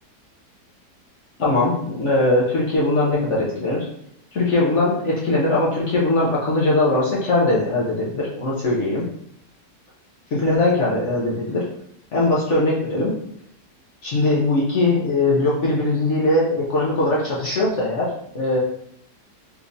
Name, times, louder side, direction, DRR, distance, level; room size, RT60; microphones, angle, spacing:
voice 1, 1.4-3.8 4.3-9.0 10.3-11.7 12.1-13.1 14.0-18.6, left 2 dB, 60° left, -6 dB, 0.8 m, -20 dB
3.6 x 2.9 x 2.5 m, 0.72 s
omnidirectional pair, 1.8 m